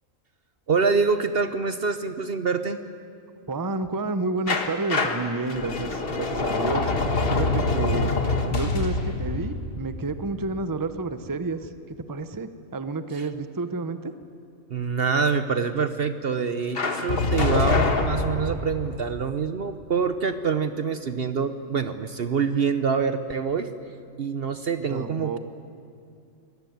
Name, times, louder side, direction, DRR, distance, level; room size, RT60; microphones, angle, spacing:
voice 1, 0.7-2.8 13.1-13.2 14.7-23.7 24.2-25.4, right 5 dB, 50° right, 10 dB, 0.9 m, -25 dB
voice 2, 3.5-6.9 7.2-8.1 8.5-11.7 12.1-14.1 24.9-25.4, right 3 dB, 20° right, 11 dB, 0.8 m, -30 dB
Jared's Gate to Hell, 4.5-11.2 16.7-19.0, left 3 dB, 45° left, 1.6 m, -25 dB
24.5 x 18.0 x 9.4 m, 2.4 s
omnidirectional pair, 1.4 m